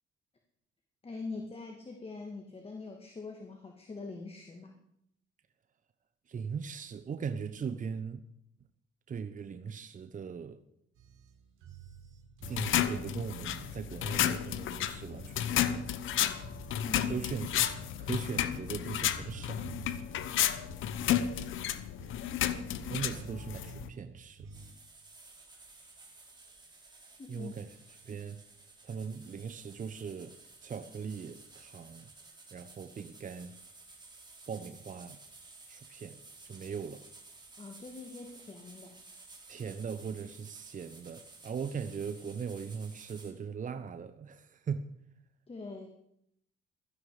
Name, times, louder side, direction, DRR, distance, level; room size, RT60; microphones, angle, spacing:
voice 1, 1.0-4.8 16.8-17.3 27.2-27.5 37.6-39.0 45.5-45.9, left 3 dB, 30° left, 2.3 m, -43 dB
voice 2, 6.3-8.2 9.1-10.6 12.5-15.9 17.0-19.7 22.9-24.5 27.3-27.7 28.0-28.4 28.8-30.4 30.6-32.1 32.5-33.6 34.5-35.2 35.7-36.2 36.4-37.0 39.5-44.9, right 6 dB, 40° right, 0.9 m, -39 dB
sound 1, 11.0-24.7, right 6 dB, 85° right, 2.5 m, -51 dB
sound 2, 12.4-23.9, left 10 dB, 80° left, 1.0 m, -32 dB
sound 3, 24.5-43.3, right 3 dB, 20° right, 3.8 m, -54 dB
16.5 x 13.0 x 5.0 m
cardioid pair, 90°, 20 cm